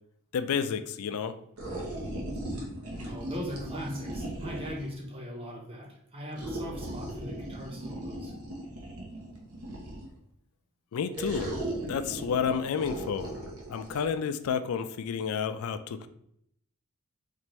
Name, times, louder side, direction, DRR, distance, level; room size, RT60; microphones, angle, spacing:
voice 1, 0.3-1.4 10.9-11.5 11.9-13.3 13.7-16.1, left 6 dB, 70° left, 11 dB, 0.3 m, -30 dB
sound 1, 1.6-4.9 6.4-10.2 11.1-14.1, right 1 dB, 80° right, 0.9 m, -38 dB
voice 2, 3.0-8.3, equal, 25° right, 0 dB, 0.8 m, -39 dB
4.4 x 2.5 x 3.1 m, 0.73 s
head